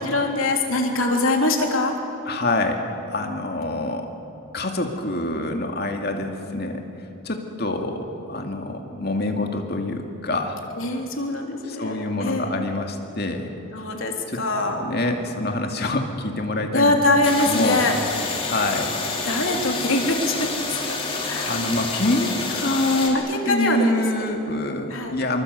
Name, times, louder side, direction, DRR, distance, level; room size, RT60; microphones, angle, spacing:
voice 1, 0.0-2.0 10.8-12.5 13.7-14.8 16.7-17.9 19.2-21.6 23.1-24.3 24.9-25.1, left 2 dB, 75° left, 2 dB, 3.4 m, -23 dB
voice 2, 2.3-4.1 4.5-6.8 7.2-10.6 11.7-13.5 14.3-14.4 14.7-16.9 17.5-17.8 18.5-19.0 19.5-19.7 21.5-25.4, left 2 dB, 50° left, 3 dB, 2.4 m, -26 dB
sound 1, 17.2-23.1, left 3 dB, 25° left, 3.0 m, -28 dB
26.0 x 22.5 x 8.2 m, 2.8 s
head